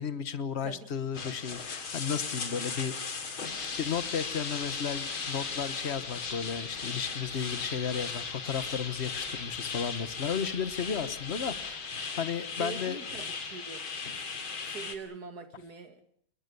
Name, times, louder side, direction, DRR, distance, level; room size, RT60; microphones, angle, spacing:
voice 1, 0.0-3.0 3.4-13.0, left 7 dB, 35° left, 1.3 m, -34 dB
sound 1, 1.1-15.0, left 5 dB, 90° left, 3.4 m, -37 dB
sound 2, 3.4-11.7, left 1 dB, 65° left, 6.0 m, -56 dB
voice 2, 12.6-13.9 14.7-16.0, right 5 dB, 50° right, 2.3 m, -43 dB
27.0 x 22.0 x 7.0 m
omnidirectional pair, 2.2 m